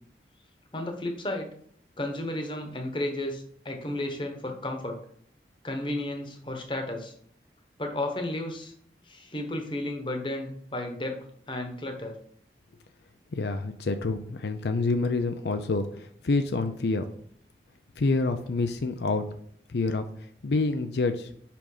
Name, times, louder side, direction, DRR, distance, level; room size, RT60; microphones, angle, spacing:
voice 1, 0.7-1.5 2.0-5.0 5.6-7.1 7.8-8.7 9.1-11.2 11.5-12.2, left 1 dB, 30° left, 4 dB, 1.1 m, -33 dB
voice 2, 13.3-17.0 18.0-19.2 19.7-21.3, left 3 dB, 70° left, 8 dB, 0.5 m, -27 dB
5.8 x 5.1 x 4.9 m, 0.63 s
head